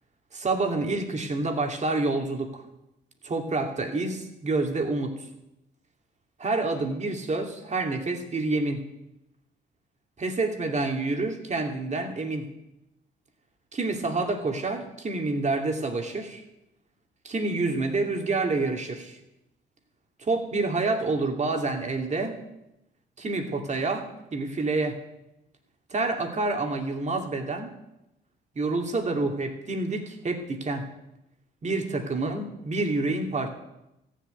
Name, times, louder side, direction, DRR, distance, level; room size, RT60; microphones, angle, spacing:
voice 1, 0.3-2.6 3.2-5.2 6.4-8.8 10.2-12.5 13.7-16.4 17.2-19.2 20.2-22.4 23.2-25.0 25.9-27.7 28.5-30.8 31.6-33.5, right 3 dB, 35° right, 3 dB, 2.6 m, -28 dB
14.5 x 7.3 x 9.5 m, 0.89 s
cardioid pair, 90°, 20 cm